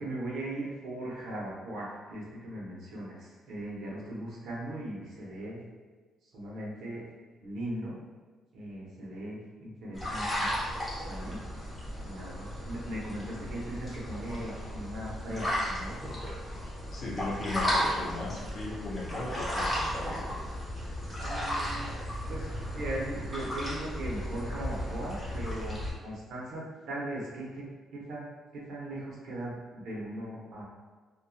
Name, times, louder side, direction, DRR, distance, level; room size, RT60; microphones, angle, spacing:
voice 1, 0.0-5.6 6.2-7.0 7.4-8.0 8.5-10.5 11.1-11.4 11.8-16.0 21.2-27.6 27.9-28.3 28.5-30.6, right 1 dB, 65° right, -5 dB, 0.8 m, -39 dB
sound 1, 9.9-25.9, equal, 5° left, 0.7 m, -34 dB
voice 2, 16.9-20.3, left 2 dB, 45° left, -5 dB, 0.7 m, -37 dB
2.6 x 2.2 x 2.6 m, 1.3 s
cardioid pair, 155°, 0 cm